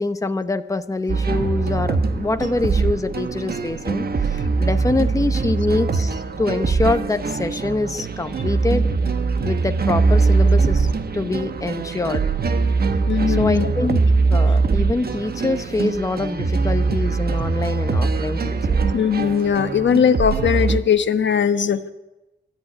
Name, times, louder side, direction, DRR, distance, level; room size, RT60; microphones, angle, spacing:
voice 1, 0.0-8.9 9.4-12.3 12.8-12.9 13.3-14.0 14.3-18.9, left 2 dB, 15° left, 8 dB, 0.9 m, -25 dB
sound 1, 1.1-20.8, right 4 dB, 55° right, 1.3 m, -21 dB
voice 2, 13.1-13.7 18.9-21.8, left 7 dB, 75° left, 9 dB, 1.2 m, -19 dB
28.0 x 13.5 x 9.9 m, 1.1 s
wide cardioid pair, 145°, 19 cm